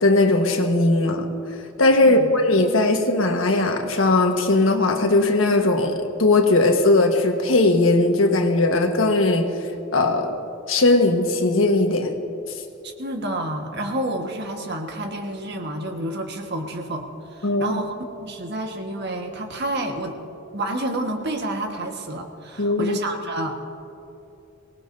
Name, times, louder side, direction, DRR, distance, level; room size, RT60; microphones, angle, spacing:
voice 1, 0.0-1.3 1.8-9.6 9.9-10.4 10.7-12.2 17.4-17.8 22.6-23.0, left 2 dB, 85° left, 1.4 m, -19 dB
voice 2, 2.0-2.3 12.8-17.9 18.2-20.2 20.5-23.6, right 1 dB, 55° right, 1.5 m, -29 dB
24.0 x 19.0 x 2.7 m
head